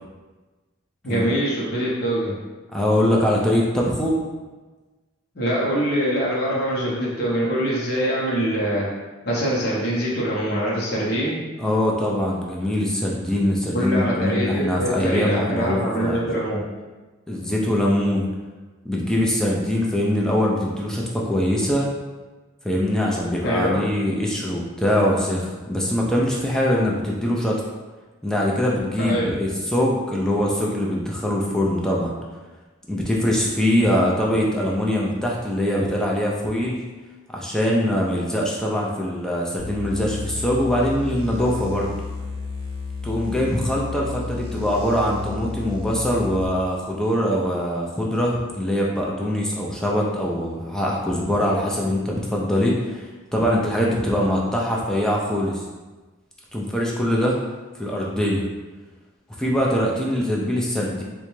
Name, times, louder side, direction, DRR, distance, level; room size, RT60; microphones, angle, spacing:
voice 1, 1.0-2.3 5.3-8.9 9.2-11.4 13.7-16.6 23.4-23.8 29.0-29.3, right 1 dB, 50° left, -6 dB, 0.7 m, -24 dB
voice 2, 2.7-4.2 11.6-16.2 17.3-18.3 18.8-21.9 22.6-27.6 28.2-32.1 32.9-36.8 37.3-41.9 43.0-55.6 56.5-57.4 57.8-58.4 59.4-61.0, equal, 5° left, -3 dB, 0.4 m, -23 dB
sound 1, 39.6-46.5, left 4 dB, 50° right, 0.7 m, -32 dB
3.7 x 2.2 x 3.0 m, 1.3 s
head